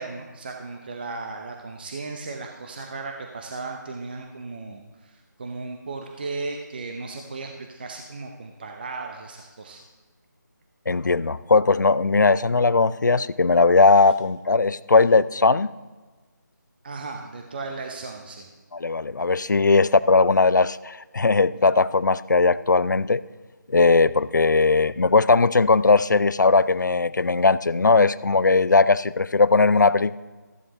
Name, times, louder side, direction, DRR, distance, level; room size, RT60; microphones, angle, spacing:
voice 1, 0.0-9.8 16.8-18.5, right 3 dB, 30° right, 3 dB, 0.7 m, -36 dB
voice 2, 10.9-15.7 18.7-23.2 23.7-30.2, left 3 dB, 70° left, 17 dB, 0.4 m, -19 dB
14.0 x 11.0 x 2.9 m, 1.3 s
figure-of-eight pair, 160°, 10 cm